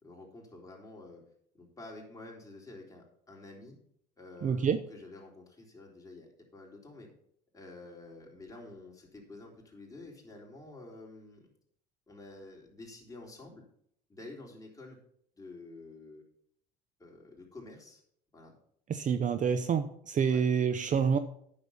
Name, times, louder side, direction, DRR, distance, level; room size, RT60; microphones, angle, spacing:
voice 1, 0.0-1.2 1.5-3.7 4.2-7.1 7.5-11.5 12.1-13.6 14.1-15.0 15.4-16.2 17.0-18.0 18.3-18.5 20.3-20.4, left 2 dB, 15° left, -1 dB, 3.7 m, -49 dB
voice 2, 4.4-4.8 18.9-21.2, right 7 dB, 40° right, 10 dB, 0.7 m, -27 dB
9.3 x 6.7 x 5.7 m, 0.68 s
hypercardioid pair, 80°, 21 cm